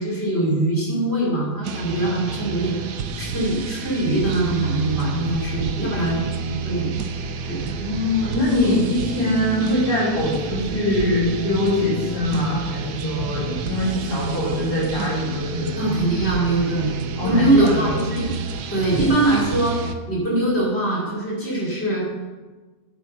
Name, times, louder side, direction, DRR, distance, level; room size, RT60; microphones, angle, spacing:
voice 1, 0.0-6.3 6.6-6.9 7.5-7.6 15.8-16.9 17.2-18.3 18.7-22.1, right 2 dB, 40° left, -4 dB, 4.1 m, -22 dB
sound 1, 1.6-19.9, right 4 dB, 80° right, 1.4 m, -30 dB
voice 2, 7.6-15.9 16.3-16.4 17.2-17.8, left 1 dB, 85° left, -12 dB, 5.2 m, -23 dB
9.3 x 9.0 x 6.0 m, 1.3 s
omnidirectional pair, 1.7 m